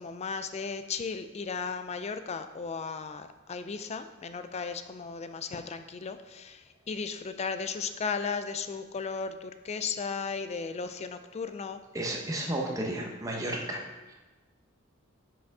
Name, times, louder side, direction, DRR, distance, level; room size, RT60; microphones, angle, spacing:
voice 1, 0.0-11.8, left 5 dB, 30° left, 10 dB, 0.4 m, -35 dB
voice 2, 11.9-13.8 14.1-14.2, right 1 dB, 15° right, -1 dB, 1.0 m, -32 dB
5.9 x 4.9 x 4.8 m, 1.2 s
head